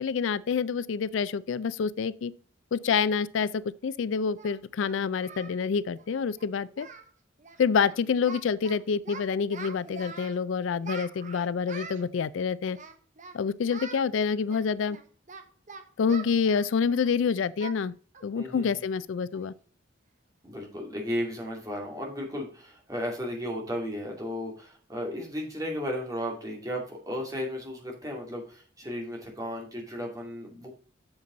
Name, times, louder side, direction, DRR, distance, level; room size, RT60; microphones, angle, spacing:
voice 1, 0.0-2.3 2.7-6.9 7.6-12.8 13.3-15.0 16.0-17.9 18.2-19.5, left 6 dB, 75° left, 0.4 m, -27 dB
Singing, 3.6-3.7 4.4-5.6 5.9-6.1 6.4-6.5 6.7-7.1 7.4-7.6 7.9-8.7 9.0-10.4 10.8-12.0 12.7-13.4 13.7-14.0 14.5-17.1 17.6-17.8 18.1-18.3 18.7-18.8 19.3-19.6, right 5 dB, 40° right, 1.0 m, -44 dB
voice 2, 18.3-18.8 20.4-30.7, equal, 20° right, 2.5 m, -34 dB
8.0 x 6.9 x 3.8 m
head